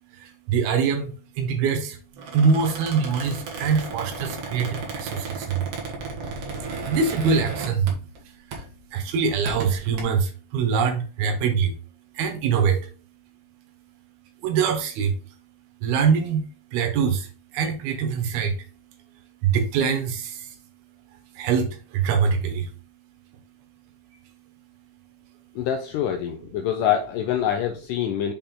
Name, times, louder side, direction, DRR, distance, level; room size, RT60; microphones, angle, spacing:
voice 1, 0.1-2.0 2.3-5.8 6.2-11.8 12.1-12.9 14.4-15.4 15.8-20.6 21.0-22.7 24.2-25.6, right 6 dB, 85° right, 3.0 m, -25 dB
Squeak, 2.1-8.2 8.5-8.8 9.3-10.0, right 4 dB, 55° right, 1.7 m, -34 dB
voice 2, 25.6-28.3, left 9 dB, 85° left, 1.9 m, -25 dB
6.6 x 4.3 x 3.7 m
omnidirectional pair, 4.4 m